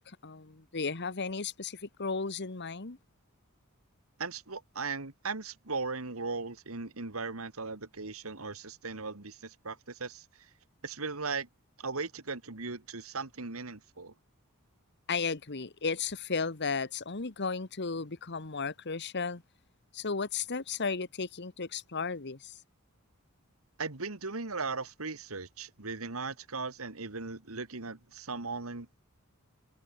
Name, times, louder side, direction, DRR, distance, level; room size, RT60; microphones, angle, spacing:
voice 1, 0.0-3.0 15.1-19.4 19.9-22.6, left 4 dB, 55° left, 1.4 m, -34 dB
voice 2, 4.2-10.5 10.8-11.5 11.8-14.1 23.8-29.0, right 4 dB, 80° right, 2.1 m, -38 dB
head